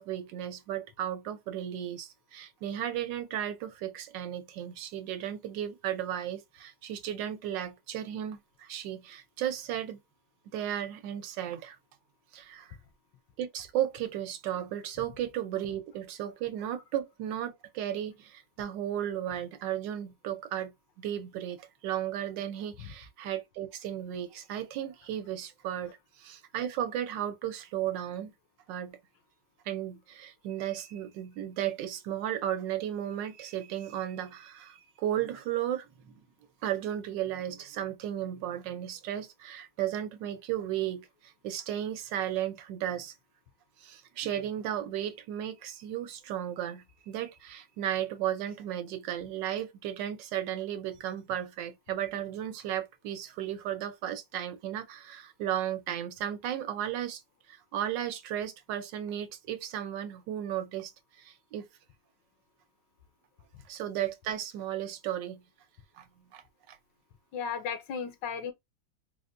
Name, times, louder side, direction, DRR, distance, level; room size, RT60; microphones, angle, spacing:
voice 1, 0.0-10.0 10.5-11.8 12.3-12.8 13.4-28.3 28.7-29.0 29.7-36.1 36.6-43.1 43.8-57.2 57.5-60.9 61.2-61.7 63.7-65.4 66.0-66.1 66.3-66.8, right 11 dB, 75° right, 1.2 m, -35 dB
voice 2, 67.3-68.5, left 6 dB, 80° left, 1.4 m, -35 dB
4.0 x 2.1 x 2.4 m
omnidirectional pair, 2.0 m